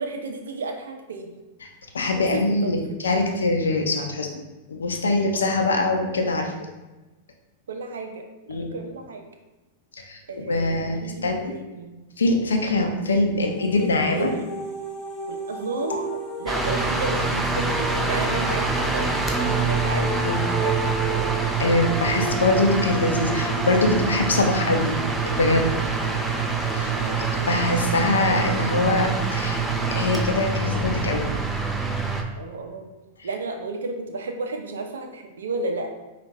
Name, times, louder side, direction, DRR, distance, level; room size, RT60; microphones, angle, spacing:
voice 1, 0.0-1.4 2.1-2.7 3.1-3.4 5.3-5.7 7.7-9.2 10.3-12.0 13.6-14.4 15.3-21.3 26.9-27.6 32.3-32.9 33.2-35.9, right 3 dB, 80° right, 4 dB, 0.6 m, -33 dB
voice 2, 1.9-4.3 4.7-6.5 8.5-8.7 10.0-11.5 12.2-14.3 20.2-20.4 21.6-25.0 25.3-25.7 26.7-27.0 27.5-29.6 29.9-31.3 33.2-33.3, left 2 dB, 90° left, 3 dB, 0.6 m, -23 dB
sound 1, 13.3-26.2, right 2 dB, 30° left, 1.0 m, -33 dB
sound 2, 16.5-32.2, right 4 dB, 5° right, 0.5 m, -25 dB
4.9 x 2.4 x 3.2 m, 1.1 s
hypercardioid pair, 110°, 0 cm